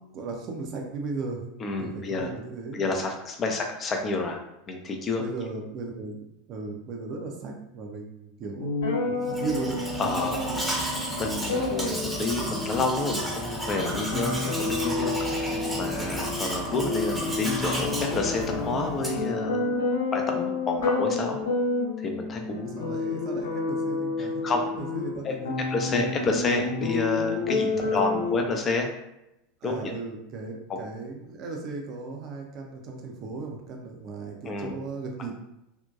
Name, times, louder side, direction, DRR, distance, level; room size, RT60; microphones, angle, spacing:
voice 1, 0.0-1.5 1.8-2.8 5.2-9.8 10.1-10.7 22.8-25.7 27.8-27.9 29.6-35.4, right 4 dB, 40° right, 1 dB, 0.5 m, -36 dB
voice 2, 1.6-2.3 2.7-4.4 4.7-5.2 10.0-10.5 11.2-19.6 20.1-21.4 22.0-22.9 24.2-24.6 25.2-25.3 25.7-28.9 29.6-29.9 30.7-30.8 34.5-34.7, left 3 dB, 30° left, 3 dB, 0.4 m, -29 dB
sound 1, 8.6-28.4, left 3 dB, 65° left, 0.9 m, -30 dB
Domestic sounds home sounds, 9.2-19.3, right 1 dB, 5° right, 0.7 m, -32 dB
2.7 x 2.1 x 2.3 m, 0.87 s
figure-of-eight pair, 80°, 0 cm